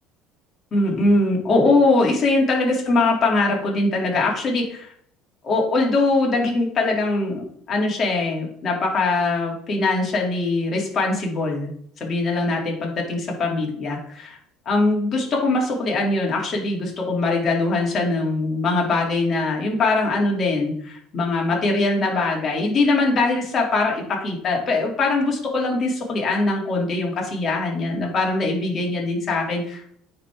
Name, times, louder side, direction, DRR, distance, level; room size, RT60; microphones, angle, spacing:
voice 1, 0.7-4.9 5.4-11.7 12.0-14.4 14.7-29.9, left 3 dB, 40° left, -1 dB, 2.5 m, -22 dB
9.4 x 3.8 x 3.5 m, 0.63 s
supercardioid pair, 85°, 0 cm